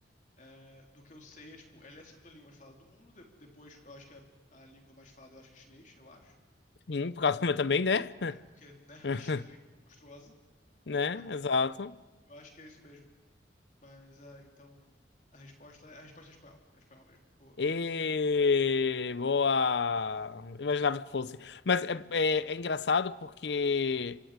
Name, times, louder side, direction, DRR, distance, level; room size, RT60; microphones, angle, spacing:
voice 1, 0.4-6.4 8.3-10.3 11.0-11.2 12.3-13.1 13.8-14.9 15.3-17.6 20.1-20.2, left 2 dB, 45° left, 3.6 m, -54 dB
voice 2, 6.9-8.4 9.0-9.4 10.9-11.9 17.6-24.2, left 4 dB, 75° left, 0.6 m, -29 dB
29.5 x 25.5 x 5.0 m
head